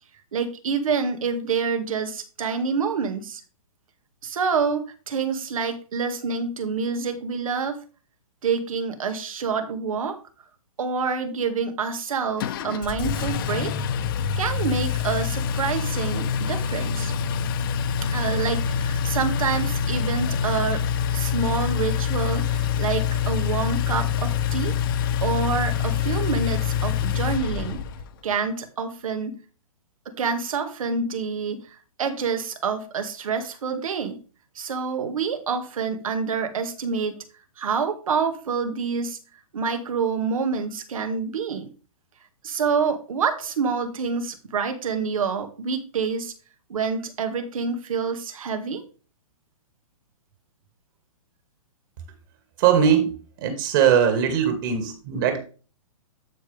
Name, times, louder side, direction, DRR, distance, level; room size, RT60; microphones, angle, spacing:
voice 1, 0.3-3.4 4.2-7.8 8.4-10.2 10.8-13.7 14.4-17.1 18.1-20.8 21.1-24.7 25.2-27.8 28.2-29.4 30.1-34.2 34.6-37.2 37.6-39.2 39.5-41.7 42.4-46.3 46.7-48.8, right 5 dB, 75° right, 7 dB, 2.1 m, -27 dB
Engine, 12.4-28.1, left 7 dB, 40° left, 1.1 m, -25 dB
voice 2, 52.6-55.4, right 8 dB, 35° right, 6 dB, 2.3 m, -20 dB
12.0 x 5.3 x 3.5 m, 0.36 s
hypercardioid pair, 165°, 18 cm